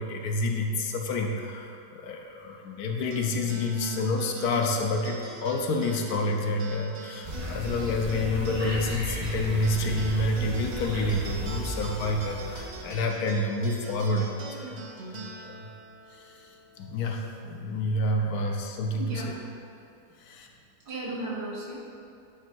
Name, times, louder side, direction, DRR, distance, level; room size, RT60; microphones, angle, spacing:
voice 1, 0.0-14.3 14.6-14.8 15.1-15.7 16.1-19.2 20.2-20.5, left 2 dB, 70° left, 2 dB, 1.1 m, -29 dB
sound 1, 3.1-17.8, right 2 dB, 55° right, 0.4 m, -43 dB
sound 2, 7.2-13.0, equal, 35° right, 1.0 m, -35 dB
voice 2, 18.1-18.6 19.0-19.4 20.5-21.8, right 2 dB, 75° right, -4 dB, 1.8 m, -36 dB
9.4 x 3.3 x 4.4 m, 2.6 s
omnidirectional pair, 1.7 m